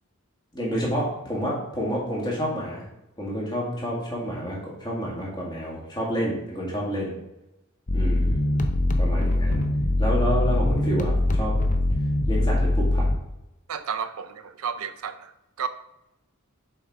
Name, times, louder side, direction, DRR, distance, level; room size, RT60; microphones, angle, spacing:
voice 1, 0.5-2.8 3.2-7.2 7.9-8.4 9.0-9.6 10.0-11.5 12.3-13.1, equal, 20° left, -4 dB, 1.9 m, -29 dB
sound 1, 7.9-13.2, left 1 dB, 35° left, 0.6 m, -22 dB
voice 2, 13.7-15.3 15.6-15.7, right 7 dB, 75° right, 11 dB, 0.5 m, -32 dB
7.1 x 4.7 x 3.6 m, 0.89 s
head